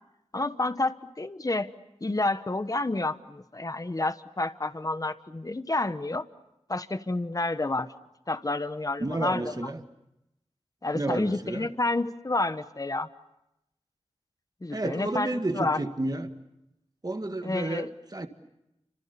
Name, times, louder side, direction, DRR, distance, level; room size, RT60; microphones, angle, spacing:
voice 1, 0.3-1.7 2.0-6.2 6.7-7.9 8.3-9.5 10.8-13.1 14.6-15.8 17.4-17.9, left 2 dB, 30° left, 11 dB, 1.2 m, -29 dB
voice 2, 9.0-9.8 10.9-11.7 14.7-16.3 17.0-18.3, right 2 dB, 35° right, 7 dB, 1.8 m, -31 dB
30.0 x 26.0 x 7.0 m, 0.87 s
wide cardioid pair, 60°, 11 cm